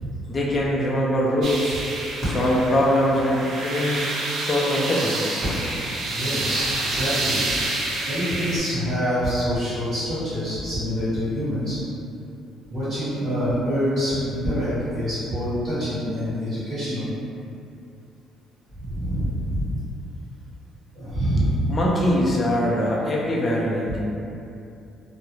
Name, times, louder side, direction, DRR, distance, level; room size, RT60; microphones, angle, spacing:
voice 1, 0.3-1.8 2.3-4.0 4.4-5.2 21.7-24.0, equal, 25° left, -5 dB, 0.3 m, -22 dB
sound 1, 1.4-8.6, right 2 dB, 60° right, 0.4 m, -28 dB
voice 2, 6.1-7.4 8.1-11.8 12.7-17.0 18.8-19.7 20.9-21.6, equal, 25° right, -14 dB, 1.2 m, -26 dB
2.3 x 2.0 x 3.0 m, 2.7 s
cardioid pair, 120°, 0 cm